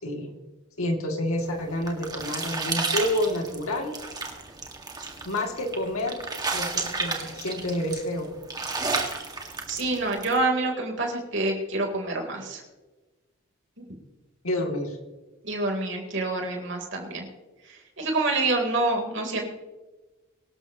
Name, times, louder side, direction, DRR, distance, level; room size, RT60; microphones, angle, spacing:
voice 1, 0.0-0.3 0.8-3.9 5.2-6.2 6.5-8.3 14.4-15.0, left 1 dB, 80° left, 1 dB, 2.7 m, -29 dB
sound 1, 1.5-10.4, right 3 dB, 20° right, 1.9 m, -32 dB
voice 2, 9.7-12.6 15.4-17.3 17.6-19.5, right 2 dB, 55° right, 1 dB, 3.7 m, -27 dB
24.0 x 12.5 x 3.1 m, 1.2 s
head